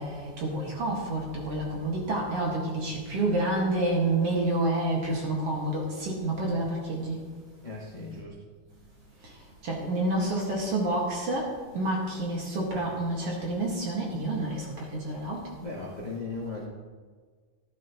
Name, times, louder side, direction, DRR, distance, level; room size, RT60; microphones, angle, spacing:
voice 1, 0.0-7.2 9.6-15.5, right 2 dB, 50° right, -2 dB, 2.2 m, -29 dB
voice 2, 7.6-8.3 15.6-16.7, left 3 dB, 75° left, -5 dB, 0.4 m, -37 dB
14.0 x 12.5 x 3.0 m, 1.5 s
omnidirectional pair, 4.5 m